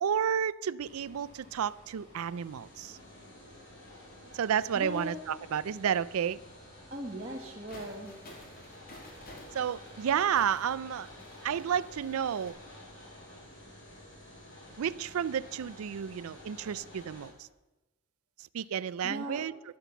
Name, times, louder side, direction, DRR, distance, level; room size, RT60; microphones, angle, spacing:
voice 1, 0.0-3.0 4.3-6.4 9.5-11.1 11.4-12.6 14.8-17.3 18.5-19.5, right 8 dB, 75° right, 0.4 m, -31 dB
sound 1, 0.8-17.3, left 1 dB, 60° left, 6.1 m, -51 dB
voice 2, 4.7-5.1 6.9-8.1 19.0-19.4, right 1 dB, 30° right, 1.2 m, -38 dB
sound 2, 7.7-12.5, left 1 dB, 45° left, 2.6 m, -52 dB
12.0 x 10.0 x 7.0 m
head